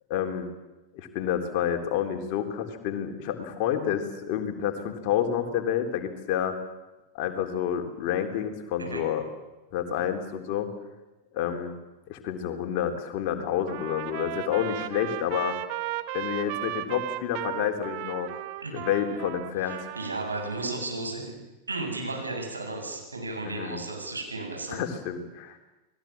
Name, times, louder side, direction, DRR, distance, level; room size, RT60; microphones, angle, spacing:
voice 1, 0.1-0.5 0.9-6.6 7.1-9.2 9.7-10.7 11.3-11.7 12.1-15.6 16.1-18.4 18.7-19.9 23.4-23.8 24.7-25.6, left 9 dB, 45° left, 4 dB, 3.6 m, -29 dB
Trumpet, 13.7-20.8, right 14 dB, 45° right, 1.4 m, -36 dB
voice 2, 19.6-21.4 21.7-24.8, right 2 dB, 80° right, 1 dB, 7.6 m, -34 dB
30.0 x 20.5 x 7.5 m, 1.1 s
figure-of-eight pair, 90°, 0 cm